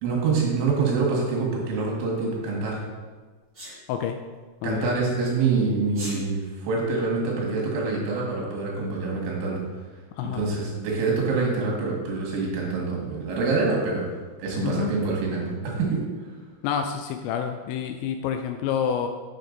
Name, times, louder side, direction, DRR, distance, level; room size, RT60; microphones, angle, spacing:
voice 1, 0.0-2.8 4.6-9.6 10.3-14.0 14.4-16.0, right 4 dB, 75° right, -2 dB, 4.2 m, -25 dB
Sneeze, 3.5-3.8 5.9-6.2, right 1 dB, 20° right, 1.8 m, -36 dB
voice 2, 16.6-19.1, left 8 dB, 85° left, 6 dB, 2.7 m, -28 dB
9.0 x 7.0 x 3.9 m, 1.4 s
omnidirectional pair, 5.6 m